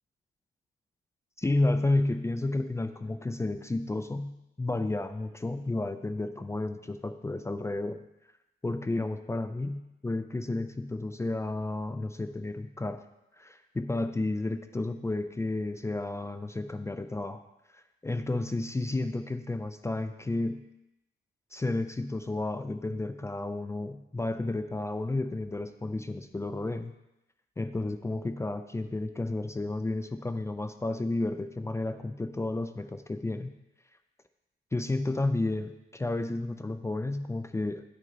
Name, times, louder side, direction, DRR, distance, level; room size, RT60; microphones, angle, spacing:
voice 1, 1.4-4.3 4.6-8.0 8.6-13.0 13.4-17.4 17.7-20.6 21.5-26.9 27.6-33.5 34.7-37.8, left 2 dB, 15° left, 8 dB, 0.5 m, -32 dB
10.0 x 6.3 x 4.0 m, 0.91 s
cardioid pair, 90°, 18 cm